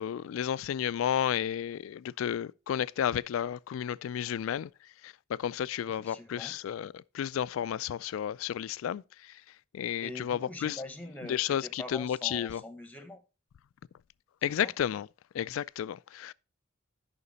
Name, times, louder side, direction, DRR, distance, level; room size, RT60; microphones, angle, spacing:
voice 1, 0.0-4.7 5.0-5.1 5.4-9.0 9.7-10.8 11.3-12.6 14.4-15.1 15.3-16.3, left 9 dB, 80° left, 0.3 m, -32 dB
voice 2, 5.9-6.5 10.0-13.2 14.5-14.7, left 1 dB, 10° left, 0.9 m, -44 dB
9.7 x 5.8 x 4.0 m
head